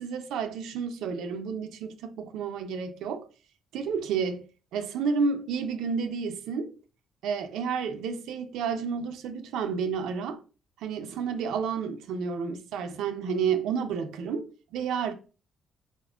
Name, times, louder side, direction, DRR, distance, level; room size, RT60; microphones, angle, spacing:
voice 1, 0.0-3.3 3.7-4.4 4.7-6.7 7.2-10.4 10.8-15.1, right 6 dB, 85° right, 0.4 m, -30 dB
4.1 x 2.5 x 2.3 m
cardioid pair, 90°, 0 cm